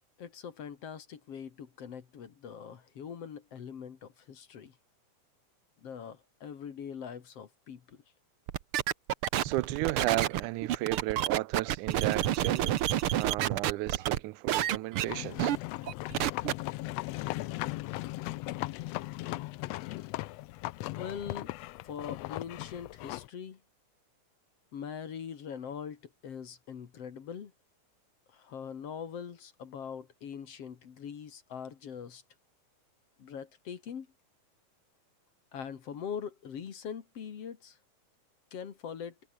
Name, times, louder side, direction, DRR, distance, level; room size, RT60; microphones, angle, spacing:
voice 1, 0.2-4.7 5.8-8.0 21.0-21.5 21.8-23.6 24.7-27.5 28.3-32.2 33.2-34.1 35.5-37.8 38.5-39.1, left 7 dB, 55° left, 2.8 m, -42 dB
sound 1, 8.5-14.2 14.5-15.0 15.4-15.6 15.9-16.5, right 12 dB, 65° right, 1.4 m, -29 dB
voice 2, 9.4-12.8 13.2-15.5, right 18 dB, 80° right, 2.2 m, -34 dB
sound 2, 15.1-23.3, left 18 dB, 80° left, 1.5 m, -38 dB
omnidirectional pair, 3.5 m